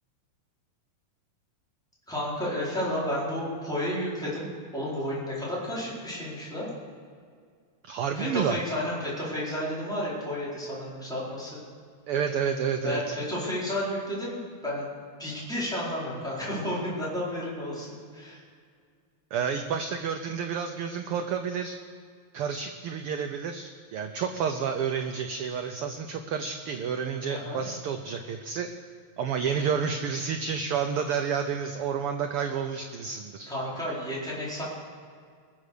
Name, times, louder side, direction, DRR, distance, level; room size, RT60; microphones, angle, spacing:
voice 1, 2.1-4.5 4.7-6.7 8.1-11.6 12.8-14.9 15.2-18.4 27.3-27.6 33.5-34.6, equal, ahead, -8 dB, 4.2 m, -32 dB
voice 2, 7.8-8.6 12.1-13.1 19.3-21.8 22.3-28.7 29.2-33.5, right 6 dB, 85° right, 6 dB, 1.2 m, -30 dB
20.5 x 7.3 x 6.7 m, 2.1 s
omnidirectional pair, 3.4 m